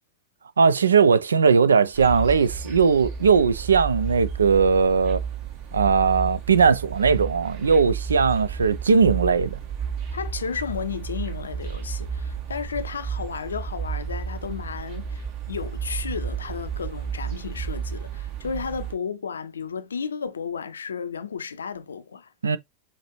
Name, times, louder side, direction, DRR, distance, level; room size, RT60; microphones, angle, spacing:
voice 1, 0.6-5.2 5.7-9.6 22.4-22.6, right 5 dB, 70° right, 0.4 m, -19 dB
sound 1, 1.9-18.9, right 12 dB, 45° right, 1.6 m, -36 dB
sound 2, 2.0-18.0, right 4 dB, 30° right, 1.4 m, -33 dB
voice 2, 10.1-22.3, left 6 dB, 70° left, 0.5 m, -33 dB
5.8 x 2.7 x 3.1 m
figure-of-eight pair, 90°, 0 cm